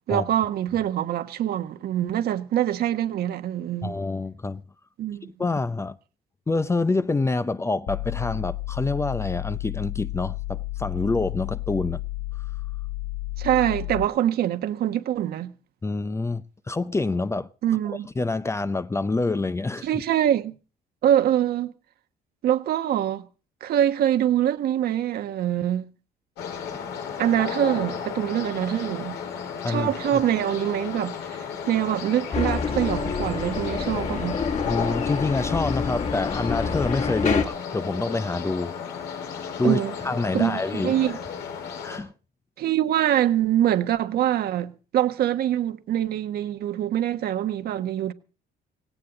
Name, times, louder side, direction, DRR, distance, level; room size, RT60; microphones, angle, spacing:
voice 1, 0.1-3.9 5.0-5.3 13.4-15.5 17.6-18.1 19.8-20.5 21.0-21.7 22.4-23.2 23.6-25.9 27.2-29.2 29.7-34.4 37.3-37.4 39.6-39.9 40.3-41.2 42.6-48.1, right 11 dB, 65° right, 1.4 m, -24 dB
voice 2, 3.8-4.6 5.4-6.0 6.5-12.0 15.8-17.5 18.2-19.9 26.7-26.8 29.6-30.2 34.7-38.7 39.6-40.9 41.8-42.1, left 3 dB, 15° left, 0.7 m, -27 dB
sound 1, 7.9-14.1, left 18 dB, 65° left, 1.0 m, -32 dB
sound 2, 26.4-42.0, left 6 dB, 85° left, 4.7 m, -34 dB
sound 3, 32.3-37.4, left 5 dB, 45° left, 2.7 m, -27 dB
17.5 x 17.0 x 3.9 m
cardioid pair, 110°, 17 cm